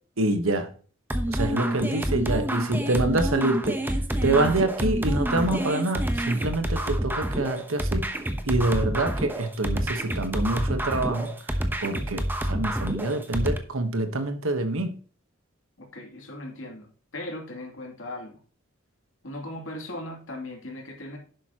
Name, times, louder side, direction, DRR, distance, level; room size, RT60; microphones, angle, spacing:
voice 1, 0.2-0.7 1.3-3.8 4.2-8.1 8.5-11.3 11.8-14.9, right 2 dB, 75° right, 1.3 m, -26 dB
sound 1, 1.1-13.6, right 1 dB, 10° right, 0.9 m, -28 dB
voice 2, 15.8-18.4 19.2-21.2, left 1 dB, 65° left, 2.9 m, -38 dB
11.0 x 7.9 x 3.0 m
head